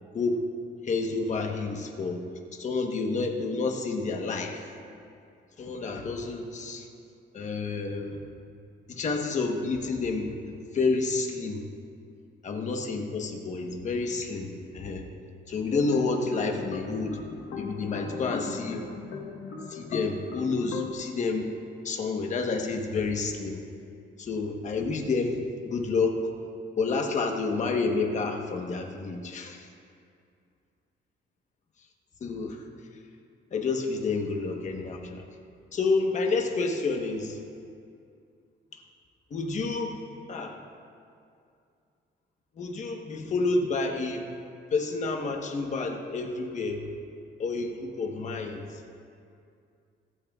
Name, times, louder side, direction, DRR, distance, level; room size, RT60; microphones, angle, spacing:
voice 1, 0.8-2.2 2.5-4.6 5.6-6.9 7.3-8.2 8.9-11.7 12.4-15.1 15.5-17.2 17.6-18.9 19.7-21.5 21.8-23.6 24.2-25.4 25.6-26.2 26.8-29.7 32.2-32.6 33.5-35.3 35.7-37.4 39.3-40.0 40.3-40.5 42.6-44.3 44.7-46.8 47.4-48.6, left 3 dB, 40° left, 2 dB, 1.1 m, -29 dB
sound 1, 15.7-20.9, left 5 dB, 85° left, 1.2 m, -38 dB
23.0 x 9.2 x 2.4 m, 2.4 s
cardioid pair, 160°, 19 cm